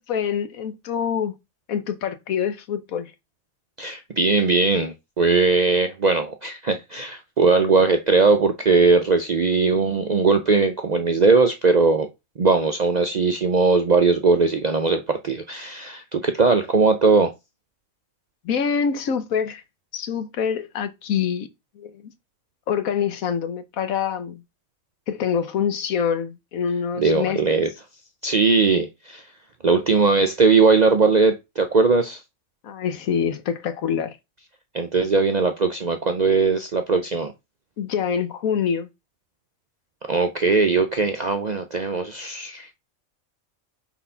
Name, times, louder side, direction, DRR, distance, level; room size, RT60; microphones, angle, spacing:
voice 1, 0.1-1.3 1.7-3.1 18.4-19.6 19.9-21.5 21.8-22.1 22.7-24.4 25.1-27.6 32.6-34.2 37.8-38.9, left 7 dB, 80° left, 1.3 m, -25 dB
voice 2, 3.8-12.1 12.4-17.3 27.0-27.7 28.2-29.3 29.6-32.2 34.7-37.3 40.1-42.8, right 4 dB, 55° right, 0.5 m, -19 dB
4.3 x 4.0 x 5.5 m
omnidirectional pair, 1.4 m